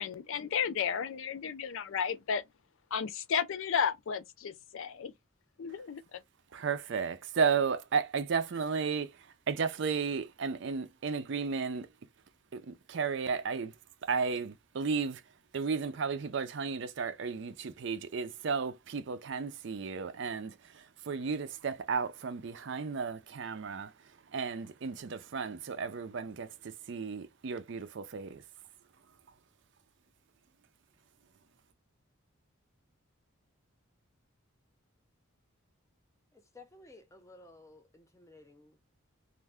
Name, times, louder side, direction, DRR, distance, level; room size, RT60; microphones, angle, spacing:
voice 1, 0.0-2.4 2.9-5.1 5.6-6.2, left 7 dB, 65° left, 0.4 m, -33 dB
voice 2, 6.5-9.1 9.5-11.9 12.5-13.7 14.0-15.2 15.5-23.9 24.3-28.4, right 5 dB, 55° right, 0.4 m, -34 dB
voice 3, 36.3-39.0, left 2 dB, 15° left, 0.5 m, -56 dB
2.5 x 2.2 x 3.4 m
head